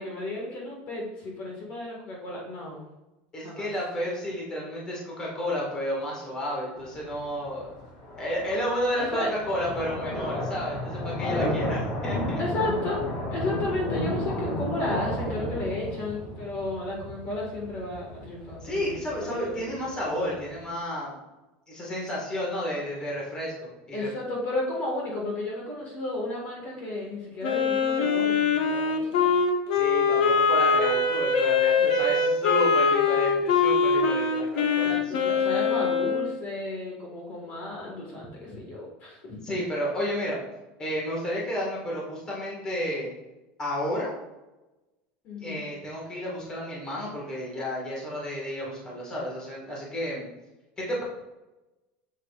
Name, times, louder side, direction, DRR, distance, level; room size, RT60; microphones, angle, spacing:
voice 1, 0.0-2.8 3.4-3.6 9.0-9.3 12.4-13.0 13.3-19.6 23.9-29.3 31.8-32.3 34.8-39.2 45.2-45.6, left 2 dB, 35° left, -2 dB, 1.7 m, -33 dB
voice 2, 3.3-7.7 8.2-12.4 18.6-21.2 21.7-24.1 29.7-35.2 39.4-40.4 40.8-43.1 43.6-44.1 45.4-50.2 50.8-51.0, equal, 15° left, -4 dB, 1.8 m, -31 dB
sound 1, 6.8-20.7, left 1 dB, 55° left, 2.4 m, -33 dB
Wind instrument woodwind instrument, 27.4-36.3, left 5 dB, 90° left, 1.1 m, -23 dB
7.8 x 7.4 x 2.4 m, 1.0 s
cardioid pair, 175°, 5 cm